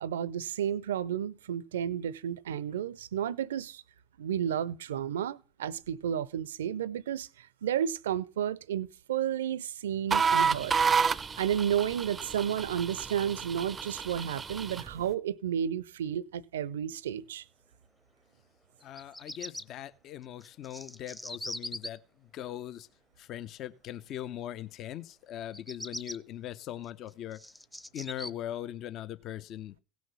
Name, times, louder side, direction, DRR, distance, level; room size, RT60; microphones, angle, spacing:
voice 1, 0.0-3.8 4.2-10.8 11.4-17.4, right 9 dB, 70° right, 0.5 m, -32 dB
sound 1, 10.1-14.9, right 6 dB, 25° right, 0.5 m, -30 dB
voice 2, 18.8-22.9 23.2-27.4 27.9-29.8, left 11 dB, 50° left, 0.8 m, -40 dB
Bird vocalization bird call bird song, 18.8-19.6 20.4-21.9 25.4-26.2 26.8-28.3, left 1 dB, 5° left, 0.8 m, -40 dB
17.0 x 6.3 x 5.5 m
figure-of-eight pair, 65°, 0 cm